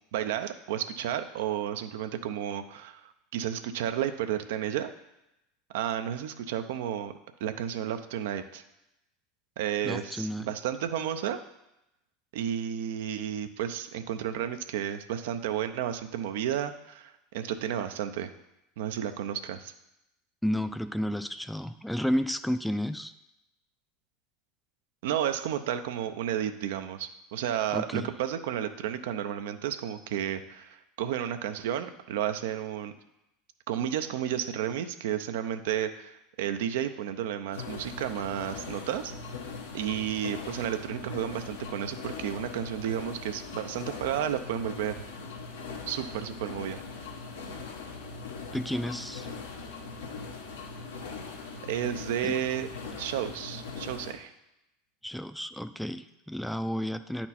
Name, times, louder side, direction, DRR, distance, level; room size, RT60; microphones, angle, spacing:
voice 1, 0.1-4.9 5.7-7.1 7.4-8.6 9.6-11.4 12.3-18.3 18.8-19.7 25.0-32.9 33.7-39.1 39.7-45.0 45.8-46.8 51.7-52.7 53.0-54.3, right 10 dB, 70° right, 9 dB, 0.5 m, -32 dB
voice 2, 9.8-10.5 20.4-23.1 27.7-28.1 48.5-49.3 52.2-52.4 55.0-57.3, equal, ahead, 11 dB, 0.4 m, -31 dB
sound 1, 37.5-54.1, left 4 dB, 80° left, 1.1 m, -41 dB
9.6 x 4.4 x 4.2 m, 0.88 s
hypercardioid pair, 85°, 0 cm